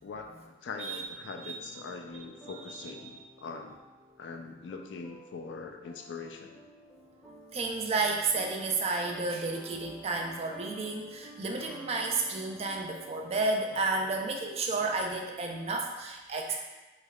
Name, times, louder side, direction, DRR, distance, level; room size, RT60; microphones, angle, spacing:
voice 1, 0.0-3.8 4.2-6.6, left 4 dB, 80° left, 4 dB, 0.4 m, -42 dB
sound 1, 1.1-15.7, right 1 dB, ahead, 0.6 m, -52 dB
voice 2, 7.5-16.6, right 3 dB, 35° right, 2 dB, 0.4 m, -31 dB
3.3 x 3.0 x 2.3 m, 1.1 s
head